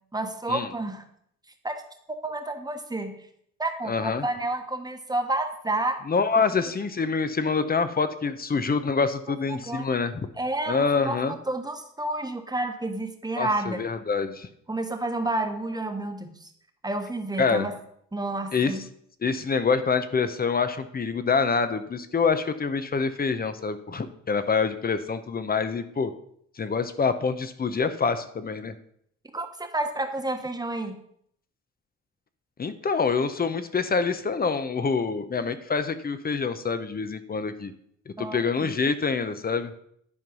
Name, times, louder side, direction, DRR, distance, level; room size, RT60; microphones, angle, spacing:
voice 1, 0.1-1.0 1.6-1.7 2.2-3.2 3.6-6.0 9.5-9.9 10.4-13.8 14.7-16.5 16.8-17.7 18.1-18.8 29.3-31.0 38.2-38.7, right 2 dB, 15° right, 5 dB, 1.3 m, -30 dB
voice 2, 3.9-4.3 6.1-10.3 10.7-11.4 13.4-14.5 17.4-17.7 18.5-18.7 19.2-26.1 26.6-28.7 32.6-37.7 38.1-39.7, left 5 dB, 30° left, 11 dB, 0.8 m, -26 dB
11.0 x 4.6 x 5.4 m, 0.68 s
cardioid pair, 90°, 30 cm